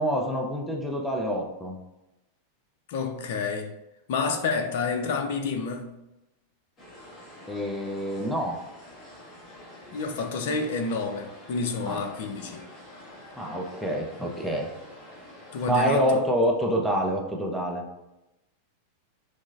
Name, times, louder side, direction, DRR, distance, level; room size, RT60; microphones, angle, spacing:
voice 1, 0.0-1.8 7.5-8.6 11.9-12.0 13.4-14.7 15.7-17.8, equal, ahead, 0.5 m, -26 dB
voice 2, 2.9-3.7 4.1-6.0 9.9-12.7 15.5-16.2, left 4 dB, 55° left, 0.4 m, -29 dB
sound 1, 6.8-16.2, left 1 dB, 25° left, 1.0 m, -47 dB
6.0 x 2.0 x 2.4 m
figure-of-eight pair, 90°, 0 cm